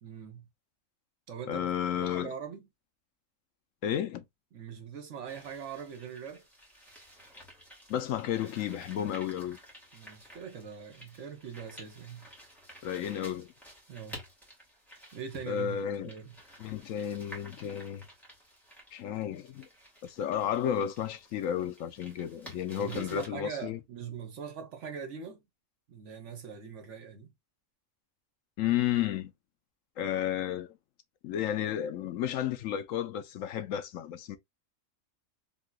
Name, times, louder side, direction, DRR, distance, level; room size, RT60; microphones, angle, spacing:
voice 1, 0.0-0.5 1.3-1.7 2.0-2.7 4.5-6.4 9.9-12.3 13.9-14.2 15.1-16.3 22.8-25.5 25.9-27.3, right 7 dB, 65° right, 1.2 m, -42 dB
voice 2, 1.5-2.3 3.8-4.2 7.9-9.6 12.8-13.5 15.5-16.1 16.6-18.0 18.9-19.7 20.0-23.8 28.6-29.3 30.0-30.7 31.2-34.4, left 10 dB, 80° left, 1.0 m, -32 dB
sound 1, 5.3-23.3, equal, ahead, 1.5 m, -52 dB
3.7 x 2.8 x 2.3 m
omnidirectional pair, 1.4 m